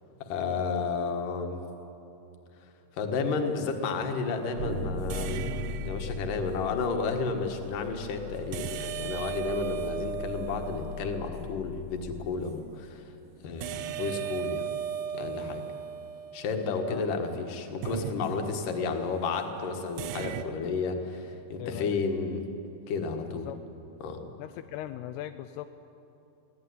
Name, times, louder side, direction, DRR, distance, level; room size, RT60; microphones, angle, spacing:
voice 1, 0.3-1.7 3.0-13.0 13.4-14.7 15.1-15.6 16.3-22.4 22.9-23.5 24.0-24.2, left 4 dB, 60° left, 4 dB, 3.1 m, -32 dB
sound 1, 3.4-3.7 5.1-6.6 8.5-11.6 13.6-17.0 17.8-18.9 20.0-20.4, right 9 dB, 85° right, 1.8 m, -37 dB
sound 2, 4.6-12.1, left 4 dB, 65° right, 1.1 m, -39 dB
voice 2, 21.6-22.0 23.3-23.6 24.4-25.7, left 13 dB, 85° left, 9 dB, 2.7 m, -39 dB
23.5 x 17.0 x 9.7 m, 2.8 s
omnidirectional pair, 4.6 m